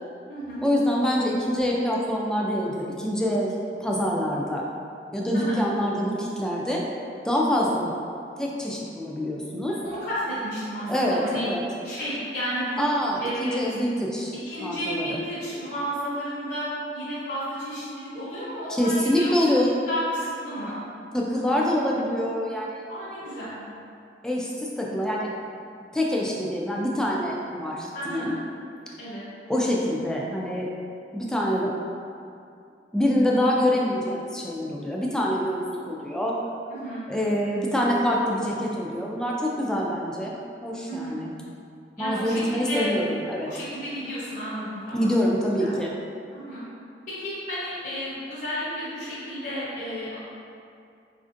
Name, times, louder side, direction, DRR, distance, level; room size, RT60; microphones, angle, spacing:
voice 1, 0.6-4.6 5.1-6.9 7.2-8.0 8.4-9.8 10.9-11.6 12.8-14.3 14.6-15.2 18.7-19.7 21.1-22.8 24.2-25.3 25.9-28.4 29.5-30.7 31.1-31.8 32.9-36.4 37.1-40.3 40.6-41.4 42.0-43.5 44.9-45.9, equal, 5° left, -3 dB, 0.3 m, -25 dB
voice 2, 9.7-11.5 11.8-12.8 13.2-13.7 14.4-19.3 19.9-20.7 22.9-23.5 27.9-28.3 29.0-29.2 36.8-37.0 40.9-41.1 42.0-42.9 43.4-45.1 45.6-45.7 46.3-46.6 47.1-50.2, equal, 50° left, -12 dB, 0.8 m, -32 dB
4.1 x 2.5 x 2.5 m, 2.5 s
head